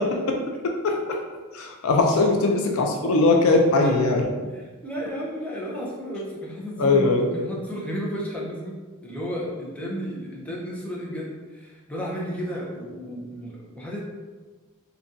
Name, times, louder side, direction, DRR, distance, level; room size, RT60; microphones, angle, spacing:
voice 1, 1.5-4.2 6.8-7.2, left 3 dB, 70° left, 2 dB, 0.4 m, -20 dB
voice 2, 3.8-4.2 4.5-8.8 9.0-14.0, equal, 5° left, -4 dB, 0.5 m, -32 dB
3.8 x 2.3 x 2.5 m, 1.3 s
head